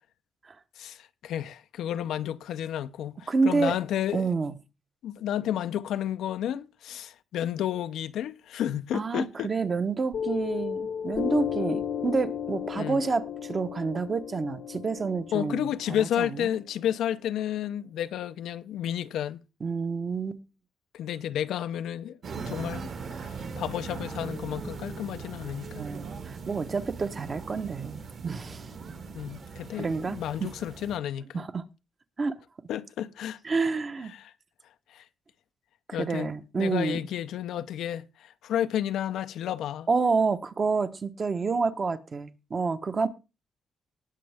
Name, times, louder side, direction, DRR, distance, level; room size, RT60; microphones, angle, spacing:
voice 1, 0.8-4.3 5.0-9.5 12.8-13.0 15.3-19.4 20.9-22.2 22.5-25.8 29.1-31.4 32.7-33.4 34.2-34.3 34.9-35.0 35.9-36.3 36.6-39.9, left 10 dB, 85° left, 0.6 m, -31 dB
voice 2, 3.3-3.8 4.1-4.6 8.9-16.5 19.6-20.4 25.8-28.8 29.8-30.5 31.3-31.6 32.2-32.4 33.4-34.1 35.9-37.0 39.9-43.1, right 4 dB, 35° right, 1.0 m, -29 dB
Piano, 10.1-17.2, left 8 dB, 65° left, 0.9 m, -34 dB
sound 1, 22.2-31.0, right 5 dB, 55° right, 2.1 m, -40 dB
19.0 x 6.4 x 3.5 m
cardioid pair, 115°, 0 cm